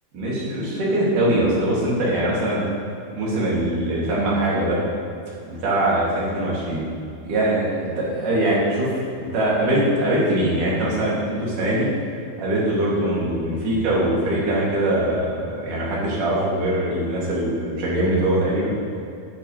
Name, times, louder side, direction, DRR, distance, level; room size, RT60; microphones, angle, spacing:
voice 1, 0.1-2.6 3.1-4.8 5.4-6.9 7.3-8.9 9.3-11.9 12.4-18.7, right 1 dB, 55° right, -6 dB, 4.2 m, -22 dB
16.5 x 9.8 x 3.4 m, 2.5 s
omnidirectional pair, 4.6 m